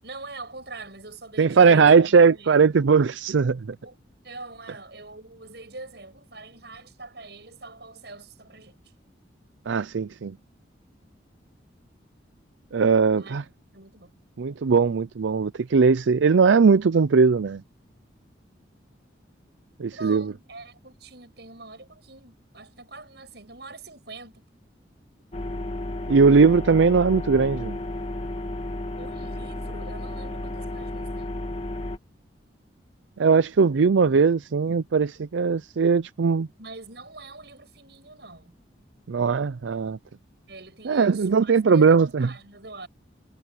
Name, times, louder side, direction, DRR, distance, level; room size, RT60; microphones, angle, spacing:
voice 1, 0.0-2.7 3.8-4.0 4.2-8.8 13.2-14.2 19.9-24.4 29.0-31.4 36.6-38.5 40.5-42.9, right 3 dB, 65° right, 7.2 m, -44 dB
voice 2, 1.4-3.7 9.7-10.3 12.7-13.4 14.4-17.6 19.8-20.3 26.1-27.8 33.2-36.5 39.1-40.0 40.9-42.3, right 5 dB, 85° right, 0.5 m, -19 dB
sound 1, 25.3-32.0, left 1 dB, 30° left, 1.9 m, -33 dB
head